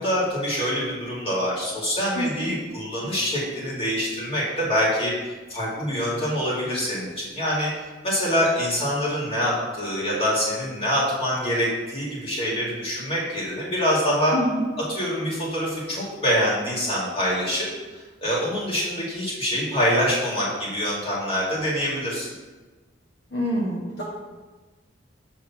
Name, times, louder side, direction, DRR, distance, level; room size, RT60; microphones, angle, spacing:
voice 1, 0.0-7.7 8.0-14.4 14.9-22.3, equal, 30° left, -5 dB, 2.1 m, -25 dB
voice 2, 2.1-2.6 14.3-14.6 23.3-24.0, equal, 60° left, -5 dB, 1.2 m, -26 dB
7.1 x 3.6 x 5.8 m, 1.3 s
head